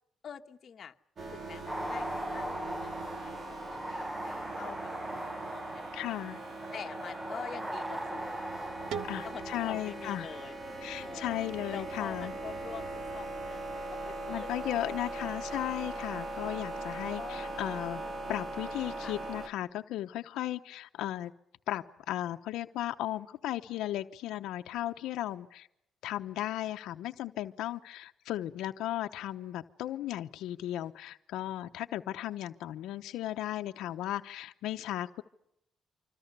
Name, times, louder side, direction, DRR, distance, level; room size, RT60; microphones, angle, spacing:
voice 1, 0.2-0.9 1.3-6.2 6.7-10.6 11.0-11.4 11.7-15.6 17.2-17.7 19.0-19.1, left 8 dB, 50° left, 5 dB, 1.4 m, -47 dB
sound 1, 1.2-19.5, right 2 dB, 40° right, 3.4 m, -40 dB
sound 2, 1.7-10.3, equal, 10° right, 1.0 m, -40 dB
voice 2, 5.9-6.4 9.0-10.4 10.8-12.3 14.3-18.0 18.3-21.3 21.7-25.7 26.0-35.2, left 13 dB, 90° left, 7 dB, 0.9 m, -36 dB
sound 3, 8.9-11.7, right 6 dB, 90° right, 1.7 m, -44 dB
26.0 x 25.5 x 6.8 m, 0.80 s
cardioid pair, 105°, 0 cm